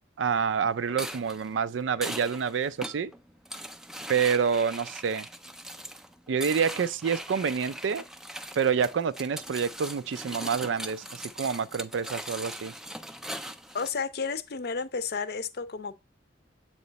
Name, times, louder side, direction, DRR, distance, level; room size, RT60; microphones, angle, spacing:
voice 1, 0.2-3.1 4.1-5.3 6.3-8.0 8.6-12.7, right 6 dB, 85° right, 0.4 m, -27 dB
sound 1, 0.9-13.9, equal, 5° right, 0.3 m, -40 dB
voice 2, 13.7-16.0, left 5 dB, 60° left, 0.6 m, -32 dB
7.8 x 3.1 x 4.0 m
head